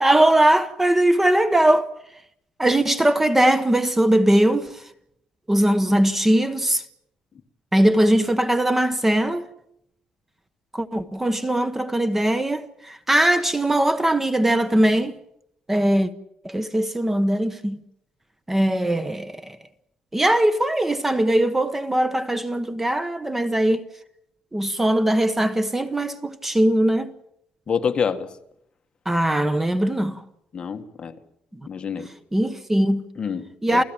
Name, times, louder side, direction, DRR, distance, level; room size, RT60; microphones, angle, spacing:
voice 1, 0.0-1.9 2.6-4.7 5.5-6.8 7.7-9.4 10.7-15.1 15.7-16.1 16.4-17.8 18.5-19.4 20.1-23.8 24.5-27.1 29.1-30.2 32.3-33.0 33.6-33.8, right 1 dB, 10° right, 1.1 m, -20 dB
voice 2, 27.7-28.3 30.5-31.2 31.7-32.1 33.2-33.8, left 6 dB, 35° left, 1.7 m, -27 dB
29.0 x 16.5 x 9.0 m
cardioid pair, 145°, 3 cm